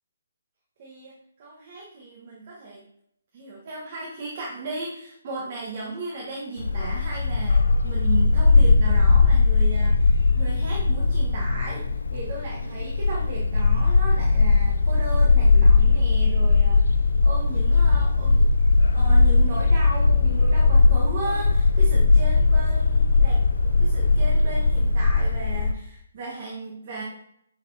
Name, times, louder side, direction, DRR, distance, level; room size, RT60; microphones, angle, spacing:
voice 1, 0.8-2.8 3.3-11.9 12.1-16.9 17.2-18.5 18.9-23.4 23.8-27.0, right 3 dB, 40° right, -3 dB, 1.3 m, -35 dB
Bark, 6.6-25.7, left 3 dB, 75° left, 0.4 m, -19 dB
8.9 x 4.1 x 2.7 m, 0.72 s
hypercardioid pair, 150°, 0 cm